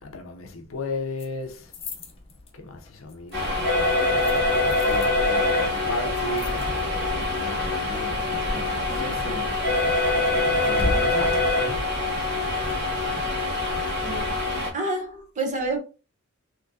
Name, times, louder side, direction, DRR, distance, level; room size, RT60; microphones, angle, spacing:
voice 1, 0.0-1.6 2.6-9.5 10.2-11.4, left 2 dB, 80° left, 0.7 m, -35 dB
sound 1, 1.2-13.5, left 2 dB, 30° left, 0.6 m, -37 dB
sound 2, 3.3-14.7, left 2 dB, 55° right, 1.5 m, -24 dB
sound 3, 3.5-10.0, left 3 dB, 10° left, 1.1 m, -44 dB
voice 2, 14.0-14.4 14.7-15.8, right 2 dB, 35° right, 0.9 m, -28 dB
3.4 x 2.9 x 2.6 m
head